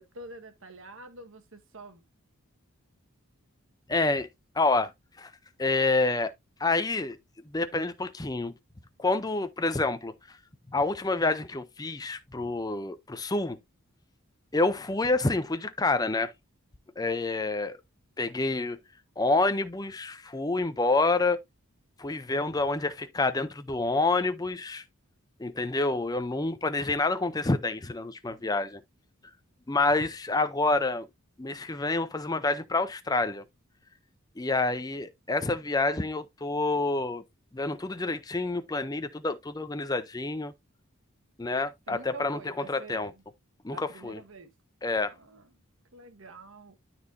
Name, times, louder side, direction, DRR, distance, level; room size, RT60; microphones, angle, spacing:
voice 1, 0.0-2.0 41.9-43.2 43.7-44.5 45.1-45.5 45.9-46.8, right 2 dB, 60° right, 1.5 m, -47 dB
voice 2, 3.9-4.3 4.6-4.9 5.2-5.3 5.6-6.3 6.6-7.2 7.5-8.5 9.0-10.1 10.7-13.6 14.5-16.3 17.0-17.8 18.2-18.8 19.2-21.4 22.0-24.8 25.4-28.8 29.7-31.1 31.4-33.4 34.4-37.2 37.5-40.5 41.4-42.4 42.7-43.1 43.6-44.2 44.8-45.1, left 3 dB, 15° left, 0.5 m, -28 dB
12.5 x 4.3 x 2.6 m
head